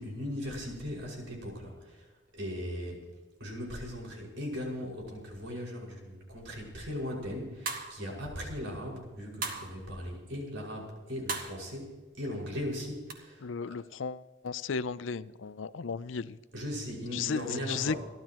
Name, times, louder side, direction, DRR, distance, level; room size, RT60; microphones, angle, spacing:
voice 1, 0.0-3.1 3.4-11.9 12.2-13.7 16.5-18.0, equal, 75° right, 5.7 m, -38 dB
sound 1, 7.7-8.1 9.4-9.8 11.3-11.6 13.1-13.2, right 3 dB, 45° right, 1.9 m, -36 dB
voice 2, 13.4-16.4 17.1-18.0, left 5 dB, 75° left, 0.5 m, -35 dB
29.5 x 12.0 x 3.0 m
head